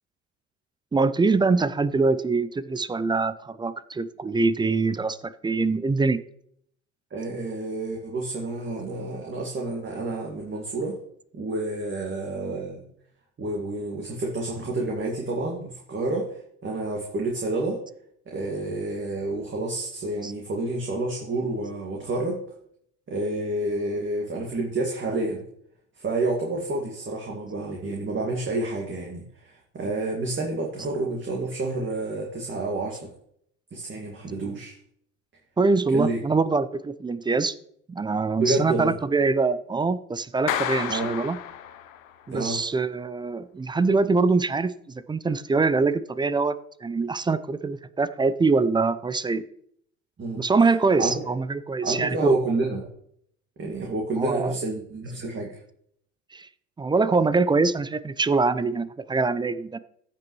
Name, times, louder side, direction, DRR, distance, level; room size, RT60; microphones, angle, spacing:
voice 1, 0.9-6.2 20.2-20.3 35.6-37.5 37.9-41.4 42.3-46.5 46.8-49.4 50.4-52.4 54.2-54.5 56.3-56.5 56.8-59.8, right 4 dB, 10° right, 16 dB, 0.4 m, -24 dB
voice 2, 7.1-11.0 11.3-12.9 13.4-17.8 18.3-22.4 23.1-25.4 26.0-33.1 33.7-34.7 35.9-36.2 38.4-39.0 40.9-41.1 42.3-42.6 50.2-50.4 51.0-51.1 51.8-52.9 53.6-55.6, right 2 dB, 30° right, -1 dB, 2.0 m, -29 dB
Clapping, 40.5-42.2, left 9 dB, 80° left, 1.0 m, -31 dB
15.0 x 5.9 x 3.1 m, 0.67 s
hypercardioid pair, 70°, 40 cm